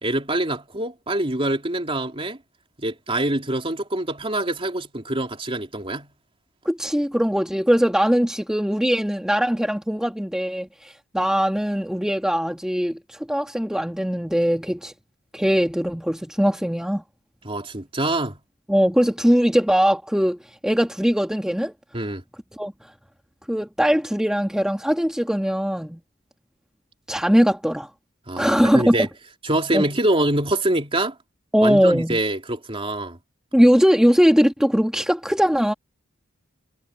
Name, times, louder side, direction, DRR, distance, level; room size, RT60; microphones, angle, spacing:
voice 1, 0.0-2.4 2.8-6.1 17.4-18.4 21.9-22.2 28.3-29.1 29.4-31.1 31.6-33.2, right 1 dB, 25° right, 3.1 m, -25 dB
voice 2, 6.6-14.9 15.3-17.0 18.7-21.7 22.5-22.7 23.5-26.0 27.1-27.9 28.4-28.9 29.7-29.8 31.5-32.2 33.5-35.7, equal, 5° right, 1.6 m, -20 dB
head